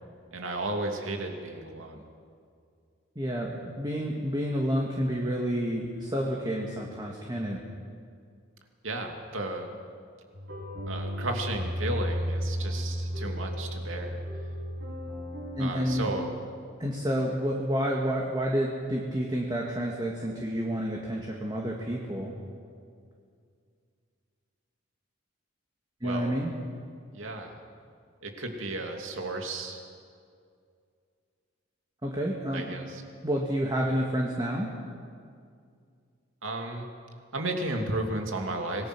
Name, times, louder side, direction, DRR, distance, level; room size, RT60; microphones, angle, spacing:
voice 1, 0.3-2.0 8.8-9.7 10.9-14.2 15.6-16.3 26.0-26.4 27.1-27.6 28.2-29.8 32.5-33.0 36.4-36.9 37.3-38.9, right 2 dB, 75° right, 3 dB, 2.7 m, -33 dB
voice 2, 3.2-7.6 15.6-16.1 16.8-22.3 26.0-26.5 32.0-32.7 33.2-34.7, equal, 20° right, -1 dB, 2.0 m, -29 dB
sound 1, 10.3-16.0, equal, 55° right, 7.6 m, -33 dB
26.0 x 20.0 x 6.2 m, 2.2 s
head